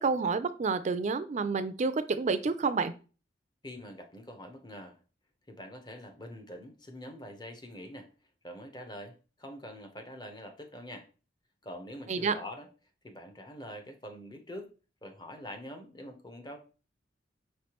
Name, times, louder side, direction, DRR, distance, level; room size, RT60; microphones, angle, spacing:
voice 1, 0.0-2.9 12.1-12.3, right 4 dB, 40° right, 12 dB, 0.4 m, -29 dB
voice 2, 3.6-5.0 5.5-8.1 8.4-11.1 11.6-12.7 13.0-14.7 15.0-16.6, left 1 dB, 25° left, 5 dB, 0.8 m, -45 dB
5.7 x 3.2 x 3.0 m, 0.35 s
head